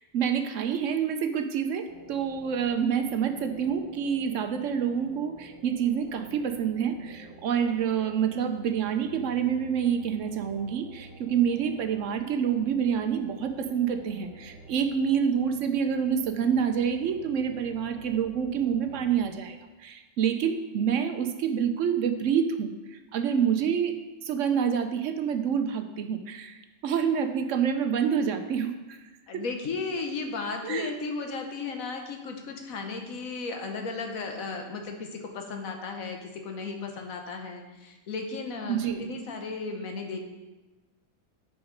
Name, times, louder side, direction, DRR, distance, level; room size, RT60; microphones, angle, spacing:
voice 1, 0.1-24.0 24.2-29.0 30.6-30.9 38.7-39.0, right 7 dB, 70° right, 7 dB, 0.9 m, -27 dB
sound 1, 1.9-19.3, right 1 dB, 50° right, 1.6 m, -49 dB
voice 2, 29.3-40.2, left 4 dB, 75° left, 4 dB, 1.4 m, -35 dB
6.4 x 5.8 x 5.1 m, 1.1 s
omnidirectional pair, 1.5 m